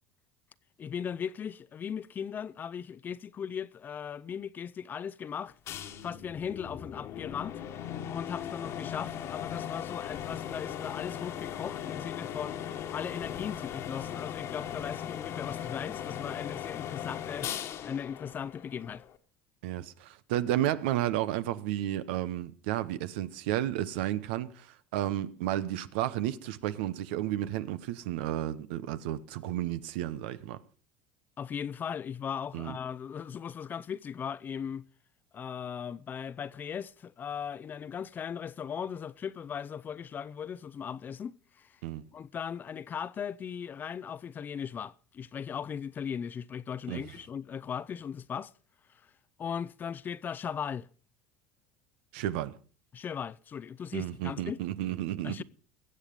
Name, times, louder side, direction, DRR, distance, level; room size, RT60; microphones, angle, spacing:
voice 1, 0.8-5.5 6.0-7.6 8.1-12.6 12.9-17.5 17.8-19.0 31.4-34.9 35.3-41.8 42.1-48.5 49.4-50.9 52.9-54.6 55.2-55.4, left 7 dB, 30° left, 0.5 m, -38 dB
sound 1, 5.7-19.2, left 9 dB, 50° left, 1.5 m, -38 dB
voice 2, 19.6-30.6 32.5-32.8 41.8-42.1 46.9-47.0 52.1-52.5 53.9-55.4, right 13 dB, 80° right, 0.9 m, -32 dB
21.0 x 7.7 x 5.2 m
supercardioid pair, 105°, 6 cm